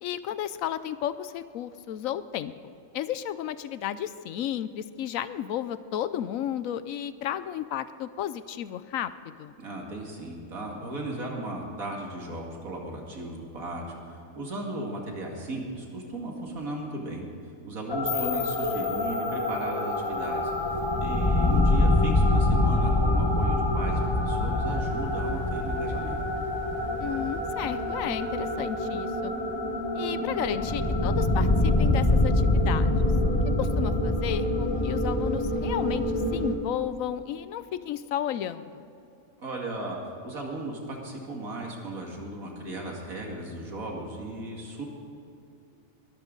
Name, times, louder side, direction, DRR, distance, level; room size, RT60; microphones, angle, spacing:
voice 1, 0.0-2.5 2.9-9.5 18.1-18.4 27.0-29.3 29.9-33.1 33.6-38.8, left 10 dB, 75° left, 14 dB, 1.0 m, -33 dB
voice 2, 9.6-17.2 17.6-20.5 21.0-26.2 39.4-40.0 40.2-44.9, right 1 dB, 80° right, 0 dB, 2.6 m, -36 dB
sound 1, 17.9-36.6, left 1 dB, 20° left, 1.2 m, -25 dB
sound 2, 18.1-21.0, left 8 dB, 60° left, 1.3 m, -38 dB
21.0 x 13.5 x 3.9 m, 2.7 s
omnidirectional pair, 1.4 m